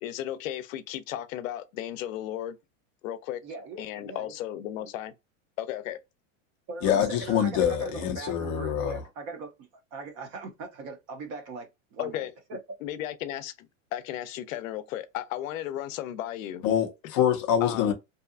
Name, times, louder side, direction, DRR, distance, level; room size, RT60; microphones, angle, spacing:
voice 1, 0.0-2.6 3.0-3.4 3.8-5.1 5.6-6.0 12.0-12.3 12.8-16.7 17.6-17.9, left 12 dB, 75° left, 0.5 m, -35 dB
voice 2, 3.4-4.3 4.8-4.9 6.7-12.2 12.5-12.6, right 3 dB, 30° right, 0.5 m, -40 dB
voice 3, 6.8-9.0 16.6-17.9, left 9 dB, 25° left, 0.3 m, -25 dB
2.7 x 2.3 x 2.4 m
supercardioid pair, 165°, 40 cm